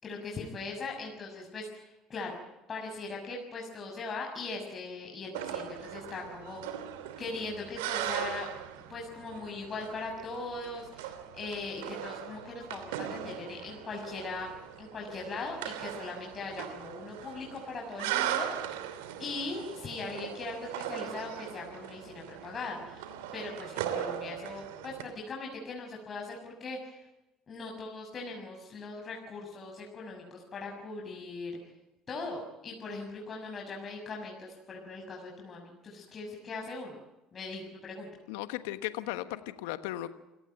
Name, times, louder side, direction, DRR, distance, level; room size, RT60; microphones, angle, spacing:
voice 1, 0.0-2.4 2.7-6.8 7.2-8.5 8.9-14.5 14.8-18.6 19.2-23.1 23.3-27.0 27.5-31.5 32.1-37.0 37.3-38.1, left 3 dB, 40° left, 0 dB, 6.6 m, -40 dB
sound 1, 5.3-25.0, right 10 dB, 85° right, 2.9 m, -39 dB
voice 2, 38.3-40.1, left 15 dB, 80° left, 11 dB, 1.3 m, -36 dB
28.5 x 17.5 x 9.1 m, 0.99 s
supercardioid pair, 80°, 0 cm